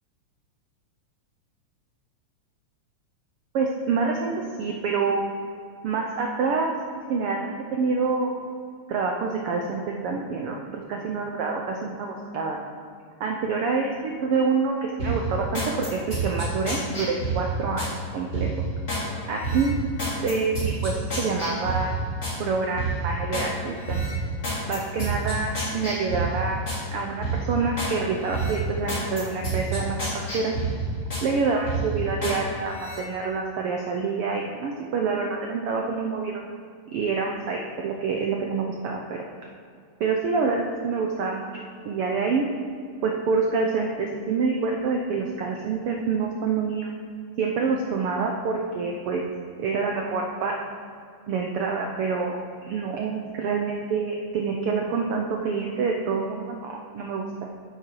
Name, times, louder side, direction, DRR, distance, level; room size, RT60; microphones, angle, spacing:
voice 1, 3.5-5.2 5.8-6.7 7.1-8.5 8.9-12.6 13.2-17.9 18.1-18.5 19.3-19.8 20.2-22.1 22.4-24.0 24.7-26.6 26.9-30.1 30.3-30.5 31.2-36.4 36.9-39.2 40.0-41.5 41.8-42.5 43.0-46.9 47.4-49.2 49.6-50.7 51.3-52.4 52.7-57.5, right 4 dB, 75° right, 1 dB, 1.3 m, -27 dB
sound 1, 15.0-17.9 18.3-19.1 19.4-22.4 22.8-23.5 23.8-26.8 27.2-27.9 28.3-31.3 31.6-32.4 32.7-33.0, right 2 dB, 25° left, 3.1 m, -29 dB
9.6 x 8.8 x 4.7 m, 2.3 s
omnidirectional pair, 3.5 m